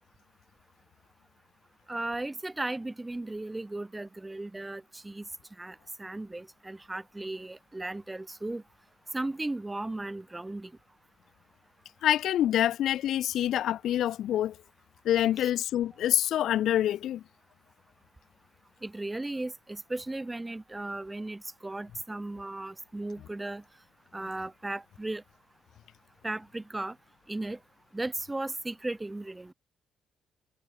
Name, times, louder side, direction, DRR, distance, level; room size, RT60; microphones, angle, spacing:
voice 1, 1.9-5.3 5.6-8.6 9.1-10.7 15.4-15.5 18.8-23.6 24.1-25.2 26.2-27.0 27.3-27.6 27.9-29.5, right 2 dB, 15° right, 1.7 m, -36 dB
voice 2, 12.0-14.5 15.0-17.2, left 11 dB, 75° left, 0.5 m, -26 dB
cardioid pair, 90°, 0 cm